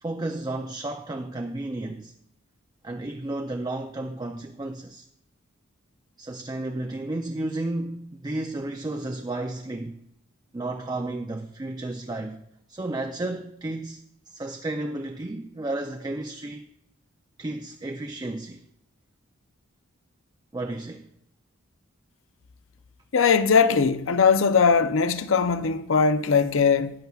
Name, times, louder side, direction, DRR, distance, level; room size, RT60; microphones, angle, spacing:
voice 1, 0.0-2.1 2.8-5.1 6.2-10.0 10.5-12.4 12.7-16.7 17.4-18.6 20.5-21.1, right 2 dB, 20° right, 0.4 m, -32 dB
voice 2, 23.1-26.9, left 5 dB, 60° left, 0.5 m, -20 dB
13.5 x 9.3 x 2.3 m
head